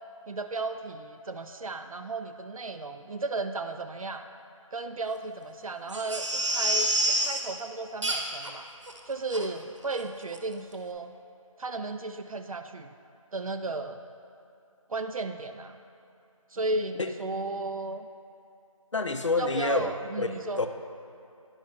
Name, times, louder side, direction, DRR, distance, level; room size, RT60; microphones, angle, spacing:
voice 1, 0.3-4.3 4.7-8.7 9.1-11.1 11.6-12.9 13.3-14.0 14.9-15.8 16.5-18.1 19.4-20.6, right 3 dB, 80° right, 7 dB, 0.4 m, -34 dB
Crying sobbing, 5.9-7.4 8.0-8.5 8.9-9.0 9.3-9.4 9.9-10.1 10.3-10.4, right 1 dB, 60° right, 0.9 m, -28 dB
voice 2, 18.9-20.3 20.6-20.7, left 3 dB, 60° left, 7 dB, 0.6 m, -27 dB
10.5 x 5.5 x 3.4 m, 2.7 s
figure-of-eight pair, 175°, 18 cm